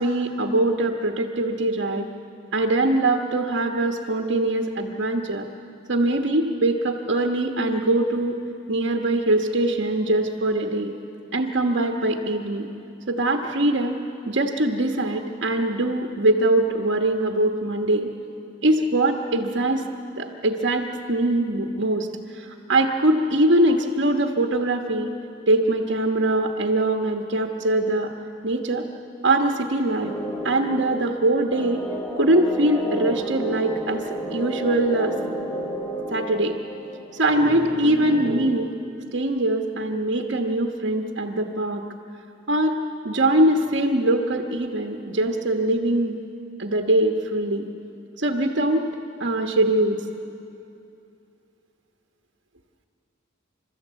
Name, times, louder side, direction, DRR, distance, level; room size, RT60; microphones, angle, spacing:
voice 1, 0.0-2.1 2.5-5.4 5.9-8.4 8.7-10.9 11.3-12.7 13.1-18.1 18.6-19.8 20.2-22.1 22.3-25.1 25.5-28.1 28.4-28.8 29.2-30.1 30.4-31.8 32.2-34.0 34.3-35.1 36.1-36.5 37.1-38.7 39.1-41.8 42.5-42.8 43.0-46.2 46.6-47.6 48.2-48.9 49.2-50.0, right 1 dB, 65° right, 2 dB, 1.2 m, -22 dB
sound 1, 30.0-38.5, equal, 15° left, 2.9 m, -32 dB
29.0 x 13.0 x 8.3 m, 2.7 s
head